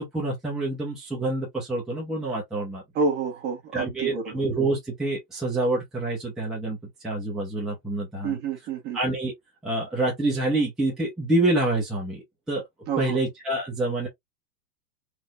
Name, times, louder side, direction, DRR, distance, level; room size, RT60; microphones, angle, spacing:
voice 1, 0.0-2.8 3.7-6.8 7.0-8.4 8.9-9.3 9.6-12.6 13.0-14.1, right 2 dB, ahead, 1.0 m, -27 dB
voice 2, 2.9-4.4 8.2-9.0 12.9-13.2, right 4 dB, 20° right, 1.4 m, -28 dB
4.2 x 3.4 x 2.5 m
supercardioid pair, 165°, 47 cm